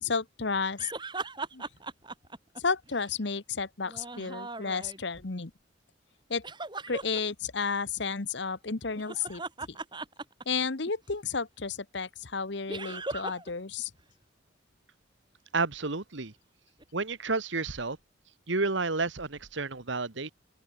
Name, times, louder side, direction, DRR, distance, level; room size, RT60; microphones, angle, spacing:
voice 1, 0.0-0.9 1.5-1.6 2.6-5.5 6.3-6.4 6.9-9.4 9.7-9.8 10.5-13.9, left 5 dB, 60° left, 1.1 m, -32 dB
sound 1, 0.8-3.1 3.9-5.2 6.4-7.2 8.9-10.9 12.7-13.5 13.8-13.9 16.8-16.9, right 3 dB, 25° right, 5.3 m, -39 dB
voice 2, 15.5-16.3 16.9-18.0 18.5-20.3, right 3 dB, 70° right, 1.6 m, -30 dB
open air
head